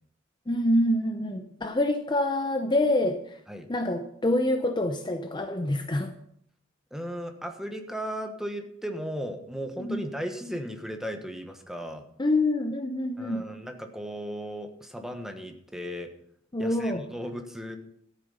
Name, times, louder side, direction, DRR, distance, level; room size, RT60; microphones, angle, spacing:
voice 1, 0.5-3.4 3.7-6.1 9.8-10.0 12.2-13.4 16.5-17.0, left 1 dB, 25° left, 6 dB, 0.7 m, -26 dB
voice 2, 6.9-12.0 13.2-16.1 16.6-17.8, equal, ahead, 5 dB, 1.2 m, -36 dB
13.5 x 8.2 x 5.5 m, 0.68 s
head